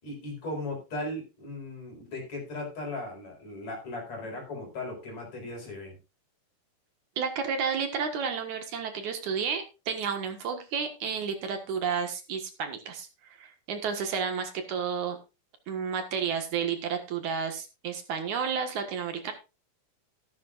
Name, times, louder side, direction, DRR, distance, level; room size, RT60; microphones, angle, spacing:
voice 1, 0.0-6.0, left 2 dB, 55° left, 1 dB, 5.9 m, -37 dB
voice 2, 7.2-15.2 15.7-19.3, right 6 dB, 70° right, 6 dB, 2.9 m, -31 dB
13.5 x 12.5 x 2.5 m, 0.28 s
omnidirectional pair, 3.7 m